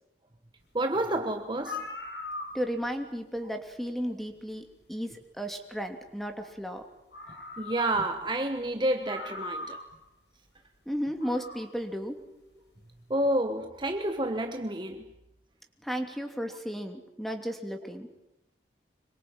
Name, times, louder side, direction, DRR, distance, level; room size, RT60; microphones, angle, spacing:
voice 1, 0.7-1.9 7.6-9.8 13.1-15.1, right 1 dB, 25° right, 1.2 m, -29 dB
sound 1, 1.2-1.3 1.5-2.9 4.3-4.4 6.7-6.8 7.1-8.3 8.6-8.7 9.0-10.0 11.1-11.7, left 2 dB, 75° left, 6.0 m, -40 dB
voice 2, 2.5-6.8 10.9-12.2 15.8-18.1, equal, ahead, 2.8 m, -34 dB
26.0 x 23.5 x 8.9 m
head